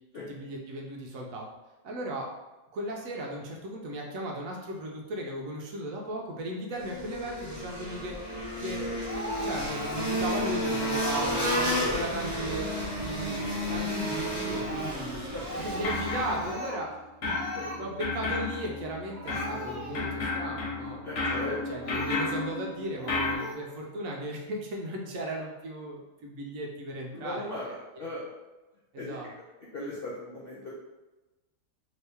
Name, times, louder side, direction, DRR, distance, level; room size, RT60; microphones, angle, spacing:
voice 1, 0.3-1.5 1.8-2.3 2.7-8.1 8.6-9.0 9.4-12.7 13.0-15.3 15.6-17.0 17.8-27.5 28.9-29.3, right 1 dB, 70° right, -1 dB, 0.9 m, -36 dB
sound 1, 6.8-16.6, equal, 15° left, 1.2 m, -32 dB
Speech, 9.1-10.2 10.6-10.7 11.1-12.2 14.4-15.0 15.4-16.9 17.2-17.8 18.7-18.8 19.1-20.2 20.7-20.9 21.8-22.3 23.0-23.5, equal, 45° right, 1.1 m, -38 dB
voice 2, 15.3-16.1 17.5-17.9 21.0-21.6 27.1-28.3 29.0-29.2 29.7-30.7, left 1 dB, 80° left, -6 dB, 0.5 m, -38 dB
sound 2, 15.5-16.9 17.2-23.4, left 3 dB, 55° left, 1.1 m, -33 dB
3.0 x 2.8 x 3.3 m, 1.1 s
omnidirectional pair, 1.8 m